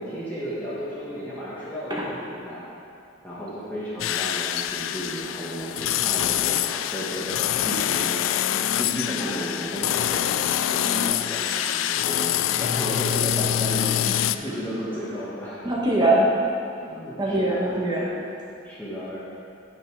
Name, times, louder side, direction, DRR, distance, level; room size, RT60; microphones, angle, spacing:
voice 1, 0.0-2.6 3.2-8.1 8.5-10.4 10.7-15.6 16.8-17.7 18.6-19.2, equal, 10° left, -10 dB, 1.3 m, -33 dB
sound 1, 4.0-14.4, left 11 dB, 85° left, 0.3 m, -25 dB
voice 2, 15.6-16.3 17.2-18.1, right 1 dB, 20° right, -4 dB, 1.2 m, -23 dB
9.7 x 5.7 x 4.7 m, 2.5 s
head